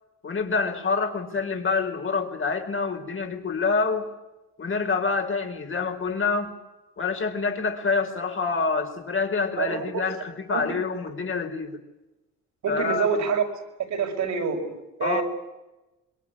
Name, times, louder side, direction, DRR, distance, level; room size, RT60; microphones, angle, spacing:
voice 1, 0.2-4.1 4.6-6.5 7.0-11.8 12.7-13.3 15.0-15.2, left 4 dB, 45° left, 5 dB, 4.9 m, -27 dB
voice 2, 9.6-10.0 10.5-10.8 12.6-13.4 13.9-15.2, right 6 dB, 70° right, 2 dB, 6.1 m, -27 dB
26.0 x 23.0 x 8.9 m, 1.0 s
cardioid pair, 90°, 30 cm